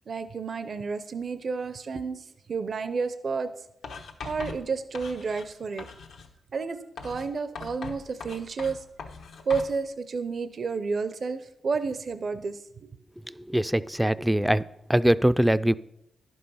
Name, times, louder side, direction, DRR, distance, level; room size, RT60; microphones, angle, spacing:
voice 1, 0.1-3.5 4.2-5.9 6.5-8.8 9.5-13.0, right 4 dB, 55° right, 11 dB, 0.5 m, -31 dB
Writing, 3.8-5.5 5.8-6.3 7.0-9.7, left 4 dB, 90° left, 1.1 m, -41 dB
voice 2, 13.5-14.6 14.9-15.8, right 1 dB, 5° right, 16 dB, 0.3 m, -22 dB
11.0 x 5.4 x 5.6 m, 0.83 s
cardioid pair, 65°, 0 cm